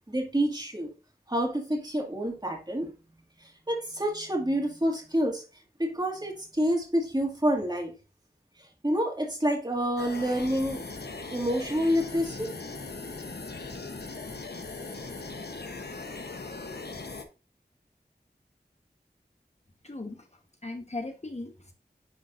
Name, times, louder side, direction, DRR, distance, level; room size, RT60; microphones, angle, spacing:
voice 1, 0.1-0.9 1.3-2.9 3.7-5.4 5.8-7.9 8.8-10.9 11.3-12.5, equal, 25° right, 2.0 m, -28 dB
sound 1, 10.0-17.2, left 3 dB, 80° left, 0.9 m, -39 dB
voice 2, 19.8-20.3 20.6-21.7, left 2 dB, 40° left, 1.1 m, -38 dB
10.0 x 4.0 x 2.5 m
wide cardioid pair, 45°, 17 cm